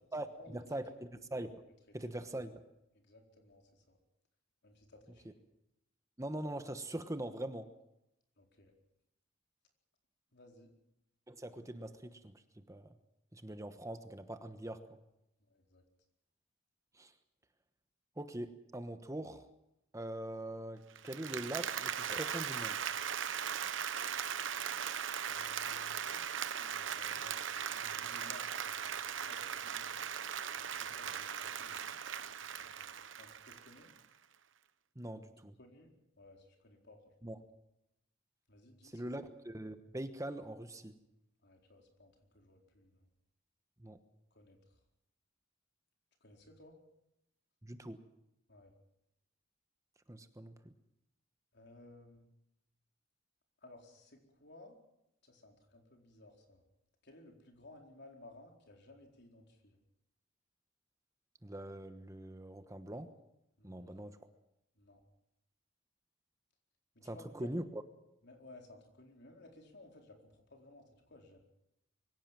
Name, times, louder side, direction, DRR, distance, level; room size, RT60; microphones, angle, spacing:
voice 1, 0.1-1.6 1.9-2.6 6.2-7.7 11.3-12.9 13.3-14.8 16.9-17.1 18.2-19.5 19.9-22.9 34.9-35.6 37.2-37.4 38.8-41.0 43.8-44.0 47.6-48.0 50.1-50.7 61.4-63.1 63.6-64.2 67.0-67.8, right 1 dB, 15° right, 9 dB, 1.1 m, -42 dB
voice 2, 3.1-4.0 4.6-5.4 8.4-8.7 10.3-10.7 14.6-14.8 15.5-15.8 25.3-29.9 30.6-33.9 35.6-37.3 38.5-39.1 41.4-43.0 44.3-44.6 46.2-46.8 48.5-48.7 51.5-52.3 53.6-54.8 55.2-56.6 57.0-59.8 63.6-64.0 64.8-65.0 66.9-67.5 68.2-71.4, left 2 dB, 60° left, 2 dB, 4.5 m, -58 dB
Applause, 21.0-34.0, right 8 dB, 70° right, 1.0 m, -39 dB
24.0 x 16.5 x 7.7 m, 0.84 s
head